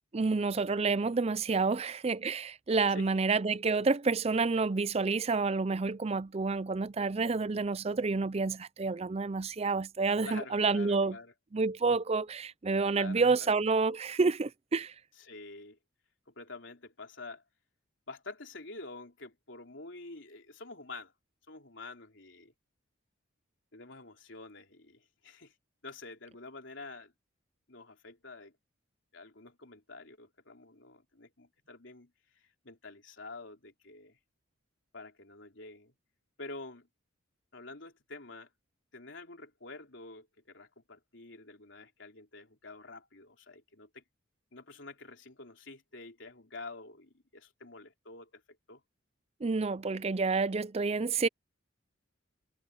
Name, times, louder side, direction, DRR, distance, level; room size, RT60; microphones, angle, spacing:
voice 1, 0.1-11.2 11.5-14.9 49.4-51.3, right 4 dB, 30° right, 0.5 m, -29 dB
voice 2, 2.9-3.2 10.2-11.3 12.9-13.5 15.2-15.8 16.3-17.4 18.1-21.1 21.5-22.5 23.7-25.5 25.8-27.1 27.7-28.5 29.1-32.1 32.4-34.2 34.9-35.9 36.4-36.9 37.5-38.5 38.9-44.0 44.5-48.4 48.7-48.8, left 3 dB, 65° left, 3.7 m, -48 dB
head